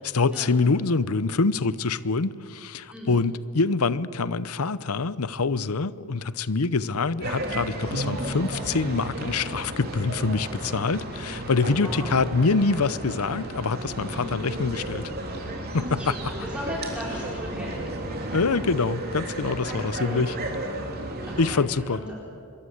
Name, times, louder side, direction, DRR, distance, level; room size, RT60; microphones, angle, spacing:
voice 1, 0.0-15.1 15.7-16.2 18.3-20.4 21.4-22.0, left 4 dB, 85° left, 0.8 m, -25 dB
voice 2, 2.9-3.2 11.8-12.2 14.1-14.4 15.9-18.2 19.7-20.2 21.3-21.6 21.9-22.0, left 1 dB, 5° right, 4.3 m, -37 dB
sound 1, 7.2-21.5, right 1 dB, 45° right, 3.4 m, -33 dB
25.0 x 23.0 x 8.0 m
head